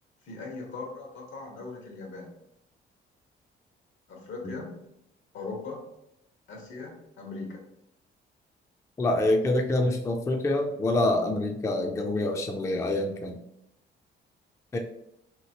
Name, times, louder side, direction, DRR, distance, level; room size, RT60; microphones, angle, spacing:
voice 1, 0.2-2.3 4.1-4.7 5.3-5.8 6.5-7.6, left 3 dB, 80° left, -1 dB, 1.1 m, -39 dB
voice 2, 9.0-13.4 14.7-14.8, left 2 dB, 15° left, 3 dB, 0.3 m, -26 dB
3.0 x 2.7 x 2.8 m, 0.83 s
cardioid pair, 90°, 20 cm